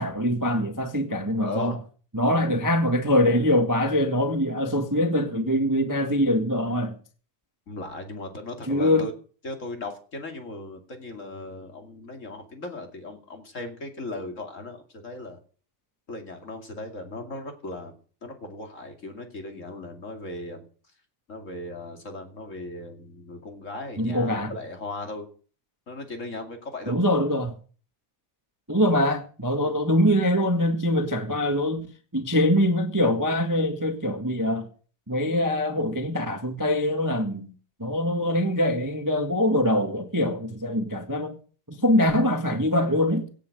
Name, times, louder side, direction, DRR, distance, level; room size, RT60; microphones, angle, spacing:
voice 1, 0.0-1.8 2.1-7.0 8.7-9.1 24.0-24.5 26.9-27.5 28.7-31.9 32.1-34.7 35.1-37.5 37.8-41.4 41.7-43.3, left 1 dB, 20° right, 0.4 m, -23 dB
voice 2, 1.4-1.8 7.7-9.1 9.4-15.4 16.1-17.9 18.2-20.6 21.3-25.3 25.9-27.0 29.6-29.8 42.0-42.1, left 2 dB, 25° left, 2.3 m, -37 dB
17.0 x 8.5 x 6.6 m
omnidirectional pair, 3.6 m